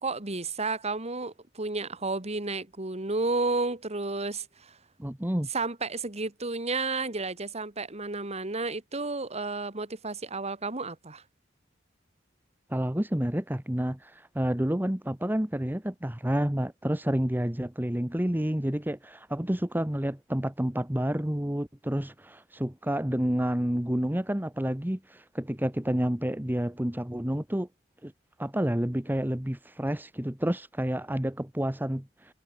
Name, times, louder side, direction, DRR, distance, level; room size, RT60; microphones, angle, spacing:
voice 1, 0.0-4.8 5.5-11.2, right 3 dB, 35° right, 2.4 m, -32 dB
voice 2, 5.0-5.5 12.7-27.7 28.0-28.1 28.4-32.3, equal, 10° right, 1.2 m, -29 dB
head